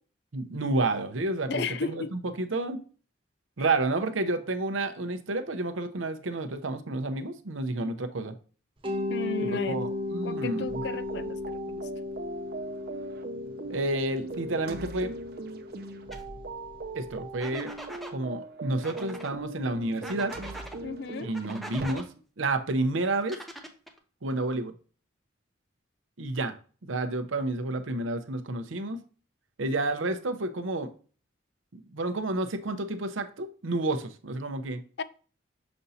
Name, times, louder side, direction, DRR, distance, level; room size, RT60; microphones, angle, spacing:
voice 1, 0.3-2.8 3.6-8.3 9.4-10.8 13.7-15.2 16.9-17.7 18.1-20.3 21.2-22.0 22.4-23.4 24.2-24.7 26.2-26.5 26.8-29.0 29.6-30.9 31.7-34.8, right 2 dB, 90° right, 0.8 m, -30 dB
voice 2, 1.5-2.1 9.1-9.9 10.2-11.9 20.8-21.3 35.0-35.1, left 5 dB, 60° left, 0.4 m, -34 dB
Mallet percussion, 8.8-17.6, left 2 dB, 25° right, 1.0 m, -36 dB
sound 1, 10.7-21.9, right 3 dB, 50° right, 0.7 m, -40 dB
sound 2, 16.1-16.2 17.4-18.1 18.8-19.3 20.0-20.8 21.3-22.0 23.2-24.0, right 1 dB, ahead, 0.6 m, -42 dB
6.9 x 5.2 x 2.7 m
head